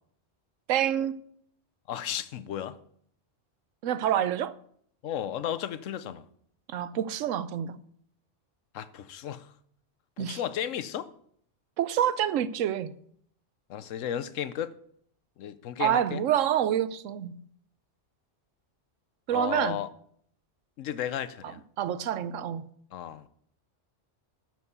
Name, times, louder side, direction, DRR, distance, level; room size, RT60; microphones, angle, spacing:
voice 1, 0.7-1.2 3.8-4.5 6.7-7.8 10.2-10.4 11.8-12.9 15.8-17.4 19.3-19.8 21.8-22.6, right 10 dB, 85° right, 1.0 m, -27 dB
voice 2, 1.9-2.8 5.0-6.2 8.7-9.5 10.2-11.1 13.7-14.8 15.4-16.2 19.3-19.9 20.8-21.6 22.9-23.3, left 10 dB, 85° left, 1.1 m, -34 dB
12.5 x 4.7 x 8.0 m
omnidirectional pair, 1.3 m